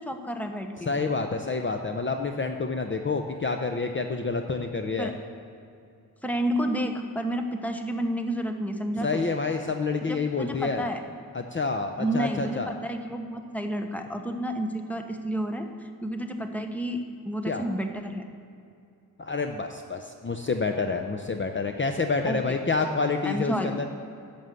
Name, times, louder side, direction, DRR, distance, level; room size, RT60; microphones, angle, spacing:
voice 1, 0.0-0.9 5.0-5.1 6.2-9.2 10.1-11.0 12.0-18.2 22.3-22.6 23.2-23.8, right 1 dB, 5° left, 5 dB, 0.9 m, -30 dB
voice 2, 0.9-5.1 9.0-10.8 11.3-12.7 17.5-17.6 19.2-23.9, left 4 dB, 35° left, 5 dB, 0.6 m, -28 dB
11.0 x 6.9 x 7.7 m, 2.5 s
wide cardioid pair, 110°, 36 cm